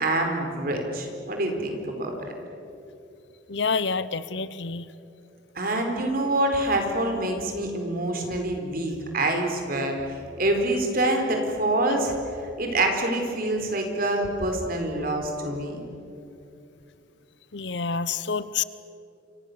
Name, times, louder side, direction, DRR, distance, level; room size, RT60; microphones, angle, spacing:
voice 1, 0.0-2.2 5.5-12.1 12.6-15.8, right 1 dB, 50° right, 3 dB, 4.4 m, -26 dB
voice 2, 3.5-4.9 17.5-18.6, left 5 dB, 65° left, 15 dB, 0.9 m, -28 dB
29.0 x 25.0 x 6.9 m, 2.7 s
head